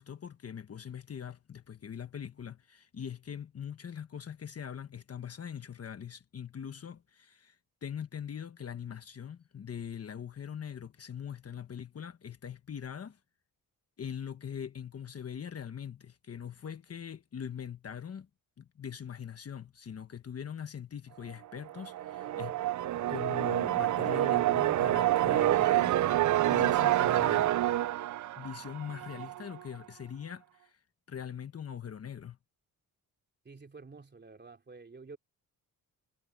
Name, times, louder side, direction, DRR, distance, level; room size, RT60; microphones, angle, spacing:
voice 1, 0.0-13.2 14.0-18.3 18.6-22.6 23.1-27.6 28.4-30.8 31.1-32.4, left 8 dB, 40° left, 1.2 m, -42 dB
sound 1, 21.7-29.4, right 13 dB, 55° right, 0.5 m, -28 dB
voice 2, 33.4-35.2, right 4 dB, 30° right, 3.2 m, -50 dB
cardioid pair, 125°, 36 cm